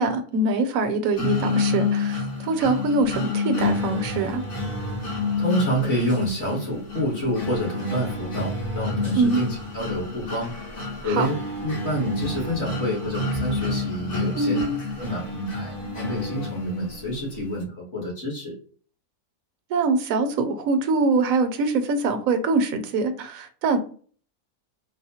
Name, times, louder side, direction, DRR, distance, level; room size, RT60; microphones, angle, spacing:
voice 1, 0.0-4.4 9.2-9.4 11.0-11.3 14.4-14.8 19.7-23.8, right 3 dB, 70° right, 7 dB, 1.0 m, -23 dB
sound 1, 1.2-17.1, left 3 dB, 85° left, 1.6 m, -29 dB
voice 2, 5.4-10.5 11.0-11.3 11.6-14.6 15.0-18.6, equal, 50° left, -3 dB, 1.5 m, -28 dB
4.1 x 2.1 x 2.7 m, 0.43 s
omnidirectional pair, 1.6 m